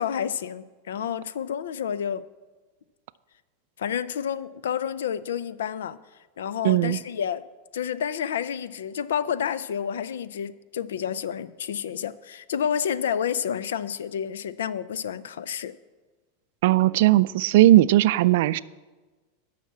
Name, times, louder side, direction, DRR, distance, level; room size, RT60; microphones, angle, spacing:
voice 1, 0.0-2.2 3.8-6.0 6.4-7.4 7.7-15.7, left 8 dB, 90° left, 16 dB, 0.4 m, -29 dB
voice 2, 6.6-7.0 16.6-18.6, right 15 dB, 70° right, 17 dB, 0.3 m, -18 dB
12.0 x 5.8 x 7.3 m, 1.3 s
supercardioid pair, 130°, 0 cm